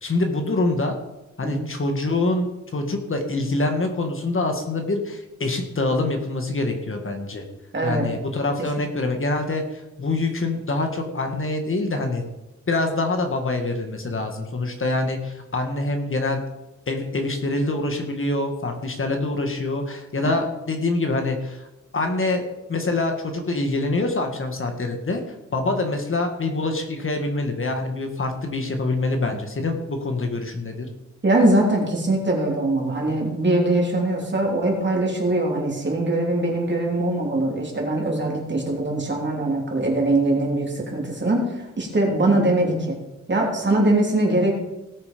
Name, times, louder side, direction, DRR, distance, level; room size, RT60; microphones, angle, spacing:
voice 1, 0.0-1.0 1.4-7.4 7.8-12.2 12.7-16.4 16.9-21.7 21.9-22.4 22.7-25.2 25.5-30.9, left 2 dB, 45° left, 4 dB, 1.7 m, -25 dB
voice 2, 7.7-8.1 20.2-20.4 31.2-43.0 43.3-44.5, right 2 dB, 35° right, -1 dB, 3.2 m, -22 dB
18.0 x 6.9 x 5.2 m, 0.96 s
wide cardioid pair, 145°, 30 cm